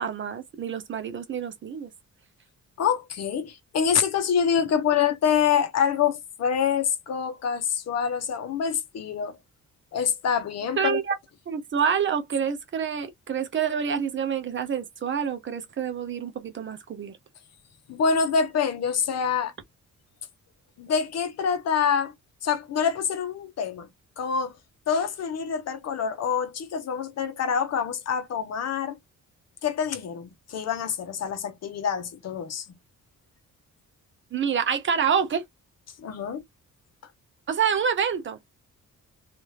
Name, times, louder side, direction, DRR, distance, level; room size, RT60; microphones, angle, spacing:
voice 1, 0.0-1.9 10.8-11.2 11.5-17.1 34.3-35.4 37.5-38.5, right 7 dB, 40° right, 0.6 m, -27 dB
voice 2, 2.8-9.4 9.9-11.0 17.9-19.5 20.8-22.1 22.4-23.9 24.2-24.5 24.9-29.0 29.6-32.7 36.0-36.4, left 7 dB, 55° left, 0.7 m, -26 dB
3.2 x 2.5 x 2.7 m
wide cardioid pair, 180°, 31 cm